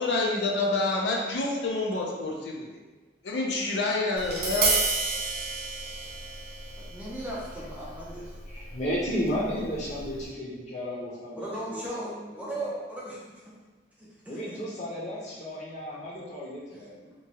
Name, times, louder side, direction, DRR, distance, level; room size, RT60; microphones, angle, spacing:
voice 1, 0.0-2.7 3.2-4.8, left 2 dB, 80° left, -1 dB, 0.5 m, -28 dB
Tap, 4.2-10.3, right 3 dB, 55° right, 0.6 m, -32 dB
voice 2, 6.8-8.4 11.4-13.2 14.0-14.6 16.7-16.8, right 1 dB, 10° right, -6 dB, 0.4 m, -37 dB
voice 3, 8.5-12.7 14.3-17.1, equal, 40° left, -5 dB, 0.7 m, -34 dB
2.9 x 2.3 x 2.8 m, 1.3 s
head